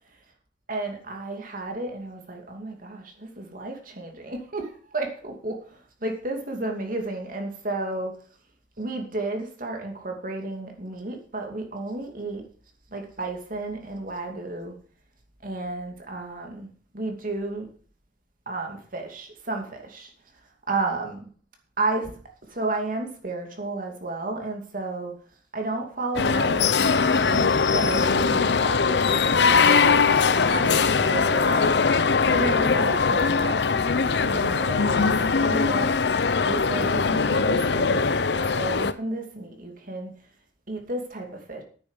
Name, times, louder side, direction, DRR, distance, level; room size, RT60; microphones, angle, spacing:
voice 1, 0.7-8.2 8.8-12.4 12.9-14.8 15.4-16.7 16.9-17.7 18.5-20.1 20.7-21.3 21.8-22.1 22.5-25.2 25.5-35.9 36.4-38.2 38.5-40.1 40.7-41.6, right 2 dB, 50° right, 3 dB, 2.5 m, -32 dB
sound 1, 26.2-38.9, left 5 dB, 65° left, 0.7 m, -21 dB
10.5 x 8.7 x 6.5 m, 0.43 s
head